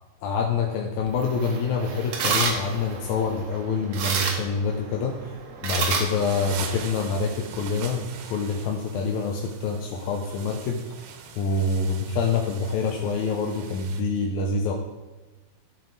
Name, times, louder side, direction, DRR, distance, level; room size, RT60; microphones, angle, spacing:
voice 1, 0.2-5.3 5.6-10.8 11.4-14.7, left 4 dB, 75° left, 1 dB, 1.9 m, -26 dB
sound 1, 1.1-7.1, right 5 dB, 65° right, 1.7 m, -30 dB
sound 2, 5.7-14.0, right 7 dB, 90° right, 2.5 m, -41 dB
13.0 x 4.6 x 4.0 m, 1.2 s
omnidirectional pair, 3.8 m